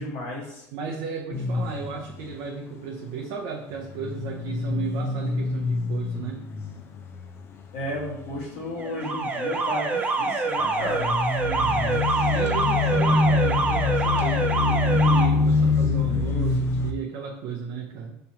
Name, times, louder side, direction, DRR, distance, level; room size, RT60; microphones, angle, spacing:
voice 1, 0.0-0.7 7.7-11.1, left 1 dB, 85° left, -3 dB, 1.6 m, -33 dB
voice 2, 0.7-6.4 11.4-18.2, right 6 dB, 65° right, 0 dB, 0.6 m, -34 dB
sound 1, 1.3-2.3 3.8-8.3 8.7-9.2 10.6-16.9, left 4 dB, 40° left, 0.5 m, -25 dB
Alarm, 8.8-15.3, right 3 dB, 20° right, 0.6 m, -25 dB
5.3 x 2.8 x 2.9 m, 0.86 s
supercardioid pair, 115°, 7 cm